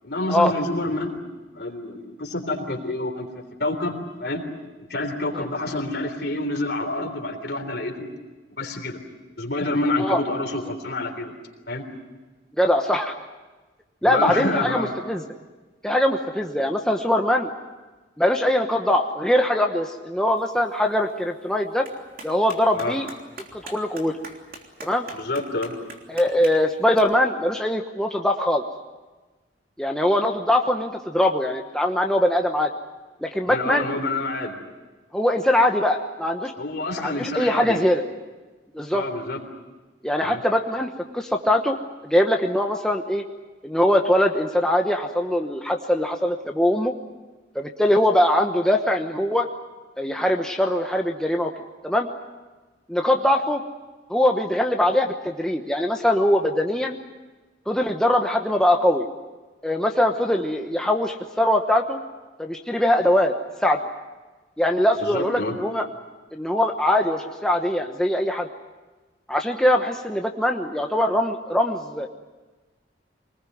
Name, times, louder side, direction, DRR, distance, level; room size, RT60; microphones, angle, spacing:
voice 1, 0.0-1.2 1.5-3.3 3.6-4.4 4.9-8.1 8.6-9.0 9.4-11.3 11.7-11.8 14.0-14.9 22.7-23.0 25.1-25.7 33.4-34.6 36.6-37.8 38.9-39.4 40.2-40.4 65.0-65.5, left 2 dB, 55° left, 4 dB, 3.5 m, -28 dB
voice 2, 12.6-13.1 14.0-15.2 15.8-17.5 18.2-21.9 22.2-23.1 23.6-24.1 24.8-25.1 26.1-28.6 29.8-32.7 33.2-33.9 35.1-36.5 37.0-38.0 38.7-39.0 40.0-41.8 42.0-43.2 43.6-46.9 47.5-49.5 50.0-51.5 51.8-52.1 52.9-53.6 54.1-57.0 57.7-59.1 59.6-62.0 62.4-63.3 63.6-63.8 64.6-65.9 66.3-68.5 69.3-72.1, left 1 dB, 5° left, 2 dB, 1.0 m, -22 dB
Clapping, 20.4-27.0, right 2 dB, 50° right, 3.4 m, -45 dB
24.5 x 20.0 x 9.4 m, 1.2 s
head